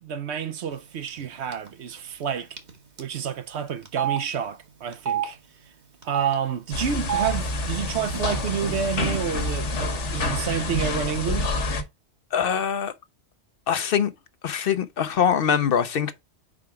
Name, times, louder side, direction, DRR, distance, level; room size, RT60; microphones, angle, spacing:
voice 1, 0.0-2.6 3.0-5.4 6.0-11.5, right 8 dB, 70° right, 1.0 m, -29 dB
Telephone, 1.1-1.3 1.5-1.7 2.6-2.7 3.0-3.1 3.9-4.2 4.9-5.3 6.0-6.4 7.0-7.3 8.1-8.2 8.5-9.2, right 9 dB, 40° right, 1.1 m, -27 dB
sound 1, 6.7-11.8, left 2 dB, 85° left, 1.5 m, -27 dB
voice 2, 12.3-12.9 13.7-14.1 14.4-16.1, left 8 dB, 60° left, 0.7 m, -23 dB
4.9 x 4.8 x 4.6 m
omnidirectional pair, 1.2 m